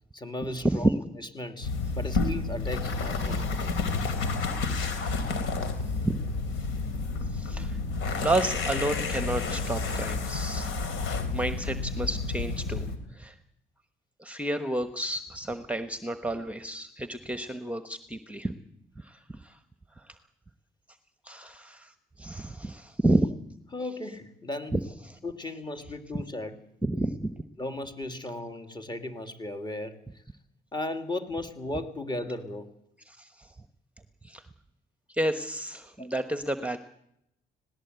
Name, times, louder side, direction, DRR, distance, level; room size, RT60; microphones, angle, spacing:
voice 1, 0.1-1.0 1.4-3.7 23.7-24.8 25.2-26.5 27.6-30.2 30.7-32.7 36.0-36.1, left 1 dB, 20° left, 6 dB, 2.6 m, -36 dB
sound 1, 1.6-13.0, left 3 dB, 85° left, 3.1 m, -30 dB
voice 2, 7.3-7.8 8.2-10.7 11.3-12.8 13.1-13.3 14.2-18.5 19.0-19.6 21.2-21.9 22.2-23.3 24.7-24.8 25.1-25.2 26.8-27.3 33.1-33.5 34.2-34.4 35.1-36.8, right 1 dB, 5° right, 9 dB, 1.2 m, -30 dB
19.0 x 18.0 x 8.1 m, 0.77 s
cardioid pair, 90°, 20 cm